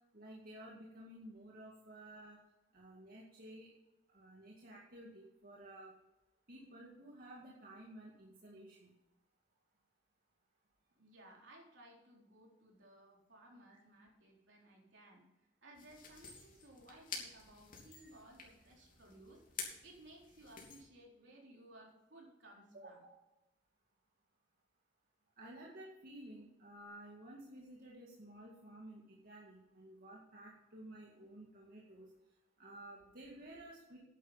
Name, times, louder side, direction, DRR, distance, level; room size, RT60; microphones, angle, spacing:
voice 1, 0.1-2.4 2.7-3.7 4.1-5.9 6.5-8.9 17.9-18.1 22.7-23.2 25.4-32.1 32.6-34.0, right 1 dB, 50° right, -4 dB, 2.1 m, -53 dB
voice 2, 10.9-15.2 15.6-23.0, right 1 dB, 70° right, -1 dB, 3.9 m, -59 dB
sound 1, 15.7-20.8, left 5 dB, 50° left, 3.1 m, -50 dB
10.5 x 9.8 x 5.7 m, 0.96 s
head